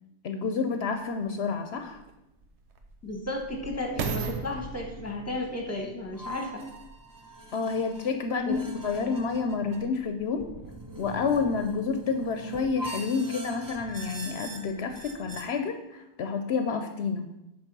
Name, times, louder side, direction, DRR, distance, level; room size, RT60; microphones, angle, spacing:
voice 1, 0.2-2.0 7.5-10.5 11.0-17.3, left 5 dB, 70° left, 6 dB, 0.9 m, -29 dB
sound 1, 1.0-1.1 1.8-7.1 7.7-7.8, right 6 dB, 90° right, 1.1 m, -38 dB
voice 2, 3.0-6.6 8.4-8.6, left 1 dB, 15° left, 2 dB, 1.3 m, -33 dB
sound 2, 6.1-15.4, right 1 dB, 20° right, 0.7 m, -42 dB
9.0 x 3.5 x 6.1 m, 0.89 s
omnidirectional pair, 1.1 m